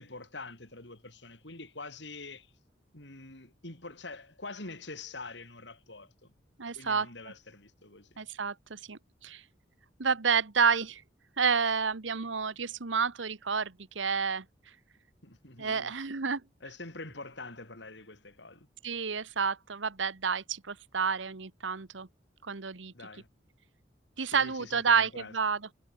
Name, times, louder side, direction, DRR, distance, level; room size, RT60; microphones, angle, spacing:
voice 1, 0.0-2.5 2.9-6.3 6.8-8.2 15.2-15.9 16.6-18.7 22.9-23.3 24.2-25.3, left 3 dB, 70° left, 5.7 m, -45 dB
voice 2, 6.6-7.1 8.2-9.4 10.0-11.0 11.4-14.4 15.6-16.4 18.8-22.1 22.4-22.9 24.2-25.6, right 5 dB, 90° right, 1.2 m, -29 dB
head